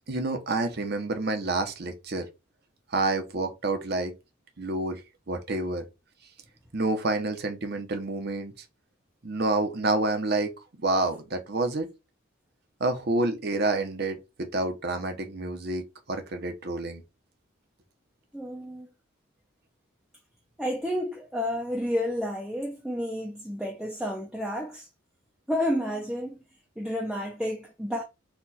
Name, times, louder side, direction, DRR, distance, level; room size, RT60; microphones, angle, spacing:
voice 1, 0.1-2.3 2.9-4.1 4.6-5.0 5.3-5.8 6.7-8.5 9.2-10.5 10.8-11.9 12.8-17.0, right 2 dB, 50° right, 0.9 m, -28 dB
voice 2, 18.3-18.9 20.6-24.9 25.5-26.4 26.8-28.0, equal, 5° right, 0.6 m, -30 dB
4.3 x 2.5 x 4.2 m
head